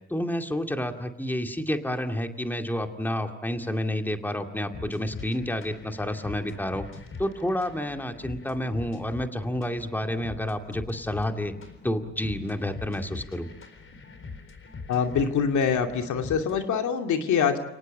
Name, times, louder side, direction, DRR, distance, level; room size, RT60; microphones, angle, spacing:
voice 1, 0.1-6.9 7.2-11.5 11.8-13.5, left 1 dB, 5° left, 5 dB, 2.2 m, -29 dB
sound 1, 4.7-16.7, left 4 dB, 45° left, 4.2 m, -43 dB
voice 2, 14.9-17.6, left 6 dB, 75° left, 5 dB, 2.6 m, -24 dB
30.0 x 18.5 x 8.5 m, 0.84 s
cardioid pair, 90°, 30 cm